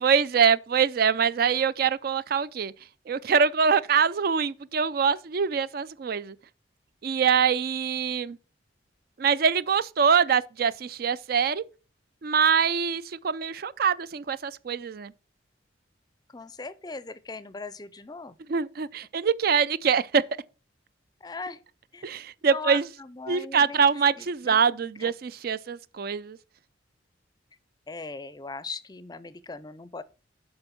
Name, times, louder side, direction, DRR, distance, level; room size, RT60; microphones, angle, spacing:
voice 1, 0.0-2.7 3.1-6.4 7.0-8.4 9.2-11.6 12.2-15.1 18.5-20.2 22.0-22.9 23.3-26.4, right 6 dB, 50° right, 0.4 m, -24 dB
voice 2, 16.3-18.4 21.2-21.6 21.9-22.3 22.5-23.8 24.5-24.6 25.0-25.1 27.9-30.0, left 4 dB, 20° left, 0.5 m, -39 dB
8.0 x 5.3 x 5.7 m
head